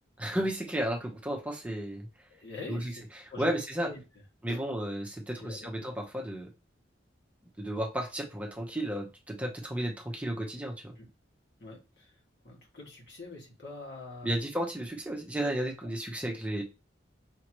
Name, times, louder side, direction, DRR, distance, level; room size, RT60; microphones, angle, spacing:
voice 1, 0.2-2.1 2.7-3.9 4.4-6.5 7.6-10.7 14.2-16.6, right 1 dB, 10° right, 0 dB, 0.7 m, -33 dB
voice 2, 2.3-3.0 3.3-3.5 3.8-4.0 4.5-4.6 5.4-5.9 11.0-11.1 11.6-11.8 12.4-14.3 15.8-15.9, left 3 dB, 65° left, -2 dB, 2.0 m, -44 dB
5.8 x 2.9 x 3.0 m, 0.29 s
head